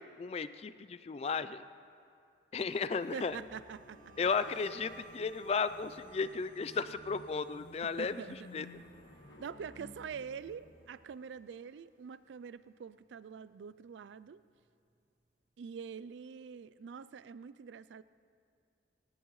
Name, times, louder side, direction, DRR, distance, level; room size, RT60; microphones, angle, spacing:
voice 1, 0.0-1.6 2.5-3.4 4.2-8.7, left 5 dB, 35° left, 13 dB, 0.3 m, -35 dB
sound 1, 2.9-12.1 12.4-12.8 13.1-14.7, right 3 dB, 45° right, 1.3 m, -60 dB
voice 2, 3.1-4.1 7.8-8.7 9.4-14.4 15.6-18.0, right 6 dB, 80° right, 16 dB, 0.4 m, -45 dB
sound 2, 3.3-10.9, left 1 dB, 75° left, 1.5 m, -56 dB
19.5 x 18.5 x 3.1 m, 2.4 s
head